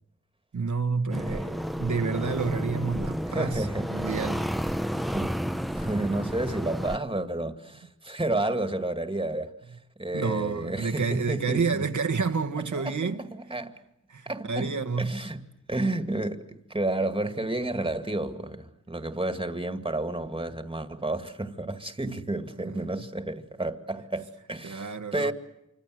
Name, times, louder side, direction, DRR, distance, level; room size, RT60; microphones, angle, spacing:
voice 1, 0.5-4.4 10.1-13.2 14.1-15.2 24.6-25.3, right 5 dB, 70° right, 1.6 m, -29 dB
sound 1, 1.1-7.0, equal, ahead, 1.0 m, -31 dB
voice 2, 1.2-1.6 3.3-4.1 4.9-5.4 5.7-9.5 10.0-11.9 12.7-13.8 14.3-25.3, right 2 dB, 15° right, 2.2 m, -31 dB
28.0 x 25.0 x 7.8 m
wide cardioid pair, 75°, 30 cm